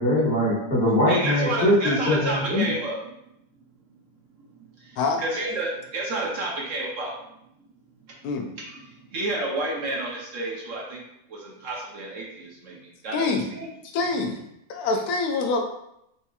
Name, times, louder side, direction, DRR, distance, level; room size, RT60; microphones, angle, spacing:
voice 1, 0.0-2.7, left 1 dB, 40° left, -7 dB, 1.4 m, -22 dB
voice 2, 1.1-3.0 4.6-7.2 8.1-8.2 8.6-11.0 11.3-13.7, right 2 dB, 65° right, -3 dB, 1.0 m, -30 dB
voice 3, 13.1-13.4 13.9-14.4 14.7-15.6, left 3 dB, 80° left, 2 dB, 1.1 m, -25 dB
4.3 x 2.7 x 2.3 m, 0.80 s
omnidirectional pair, 1.6 m